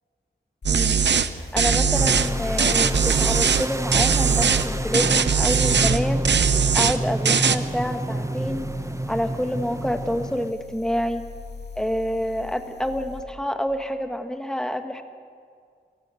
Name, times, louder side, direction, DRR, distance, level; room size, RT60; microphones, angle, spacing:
sound 1, 0.6-13.3, left 4 dB, 75° left, 2.2 m, -36 dB
sound 2, 0.6-1.3 1.6-2.3 2.6-3.7 3.9-4.7 4.9-6.0 6.2-7.0 7.2-7.6, right 6 dB, 85° right, 0.8 m, -20 dB
voice 1, 0.7-1.1 1.5-6.3 6.7-8.6 9.1-11.3 11.8-15.0, equal, 5° left, 7 dB, 1.7 m, -27 dB
sound 3, 1.9-10.5, right 1 dB, 15° right, 0.8 m, -29 dB
25.5 x 15.5 x 7.8 m, 2.1 s
cardioid pair, 50°, 18 cm